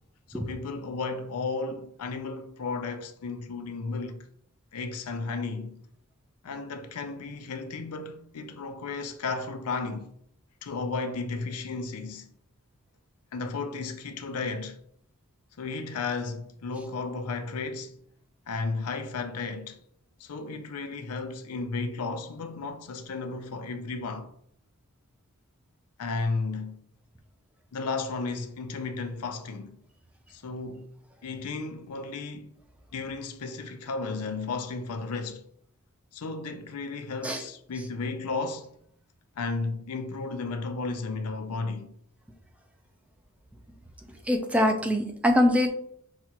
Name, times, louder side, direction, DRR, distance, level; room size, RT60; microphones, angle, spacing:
voice 1, 0.3-4.3 4.7-5.8 6.4-10.1 10.6-12.3 13.3-14.8 15.6-18.0 18.5-19.8 20.2-24.3 26.0-26.8 27.7-29.8 30.3-30.9 31.2-32.5 32.9-35.4 36.1-38.7 39.4-41.9, left 3 dB, 85° left, 0.5 m, -34 dB
voice 2, 44.3-45.7, left 1 dB, 5° right, 0.4 m, -23 dB
5.8 x 2.4 x 2.8 m
head